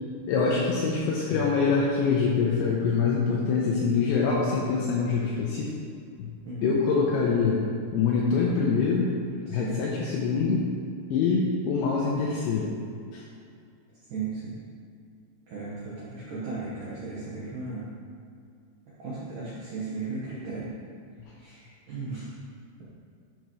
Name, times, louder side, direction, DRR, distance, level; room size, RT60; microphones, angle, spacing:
voice 1, 0.3-5.7 6.6-7.6 7.9-9.1 9.5-10.7 11.1-12.7 13.1-13.2, left 5 dB, 80° left, -3 dB, 2.7 m, -24 dB
voice 2, 14.1-14.5 15.5-17.8 19.0-20.6 21.4-21.6 21.9-22.2, right 4 dB, 80° right, -9 dB, 1.8 m, -35 dB
12.0 x 6.8 x 3.2 m, 2.3 s
omnidirectional pair, 6.0 m